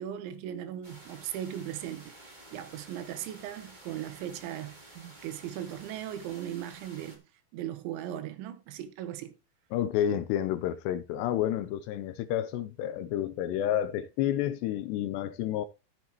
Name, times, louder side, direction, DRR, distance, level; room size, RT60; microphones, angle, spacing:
voice 1, 0.0-7.2 7.5-9.4, right 11 dB, 85° right, 3.4 m, -38 dB
sound 1, 0.8-7.2, right 1 dB, 20° right, 1.4 m, -52 dB
voice 2, 9.7-15.7, left 11 dB, 80° left, 2.6 m, -30 dB
14.0 x 8.0 x 3.0 m
omnidirectional pair, 5.2 m